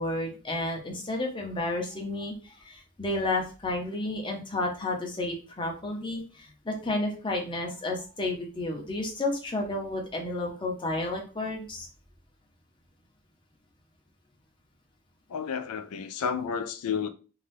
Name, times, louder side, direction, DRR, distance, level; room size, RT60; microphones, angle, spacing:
voice 1, 0.0-11.9, left 2 dB, 20° left, 0.6 m, -31 dB
voice 2, 15.3-17.1, left 6 dB, 80° left, 0.4 m, -31 dB
2.6 x 2.3 x 3.3 m
head